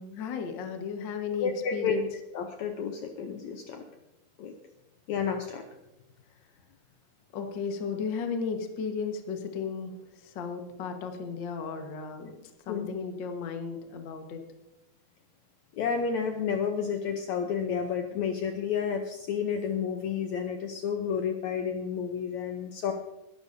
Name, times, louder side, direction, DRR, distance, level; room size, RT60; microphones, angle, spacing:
voice 1, 0.0-2.1 7.3-12.4 12.7-14.4, left 5 dB, 55° left, 4 dB, 1.3 m, -34 dB
voice 2, 1.4-2.0 2.3-3.8 4.4-4.5 5.1-5.6 12.7-12.9 15.7-22.9, left 7 dB, 70° left, 4 dB, 1.8 m, -31 dB
21.0 x 12.0 x 2.7 m, 0.96 s
omnidirectional pair, 4.1 m